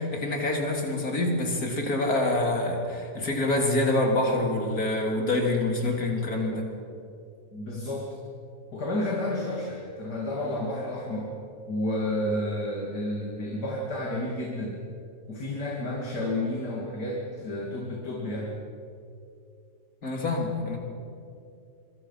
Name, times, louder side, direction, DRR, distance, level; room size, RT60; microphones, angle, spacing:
voice 1, 0.0-6.7 20.0-20.8, left 2 dB, 60° left, 1 dB, 3.9 m, -26 dB
voice 2, 7.5-8.1 8.7-11.3 11.7-14.8 15.3-18.6, left 1 dB, 85° left, -2 dB, 3.3 m, -31 dB
25.5 x 23.5 x 5.8 m, 2.6 s
omnidirectional pair, 1.7 m